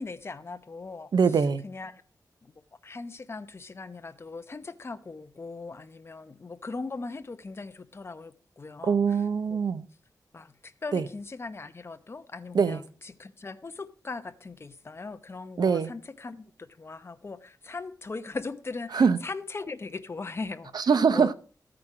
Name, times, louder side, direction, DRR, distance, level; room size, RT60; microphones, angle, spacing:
voice 1, 0.0-1.1 1.6-1.9 2.4-2.5 2.8-9.0 9.5-9.6 10.3-20.9 21.1-21.3, left 3 dB, 35° left, 0.8 m, -39 dB
voice 2, 1.1-1.7 8.8-9.9 10.9-11.1 12.5-12.8 15.6-15.9 18.9-19.2 20.7-21.3, right 6 dB, 75° right, 0.7 m, -23 dB
14.0 x 8.8 x 4.9 m
wide cardioid pair, 135°, 7 cm